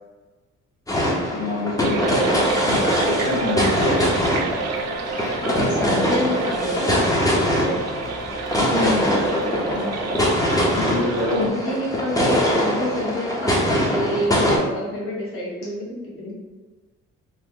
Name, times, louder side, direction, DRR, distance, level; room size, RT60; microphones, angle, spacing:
sound 1, 0.9-14.6, equal, 10° left, 0.7 m, -22 dB
voice 1, 1.3-4.0 8.6-10.3 10.8-11.5, left 2 dB, 75° left, -4 dB, 0.7 m, -27 dB
sound 2, 1.8-11.5, right 5 dB, 60° right, 0.5 m, -30 dB
voice 2, 5.4-7.8 11.3-16.3, equal, 45° left, -4 dB, 1.3 m, -28 dB
3.1 x 2.1 x 3.7 m, 1.3 s
cardioid pair, 90°, 30 cm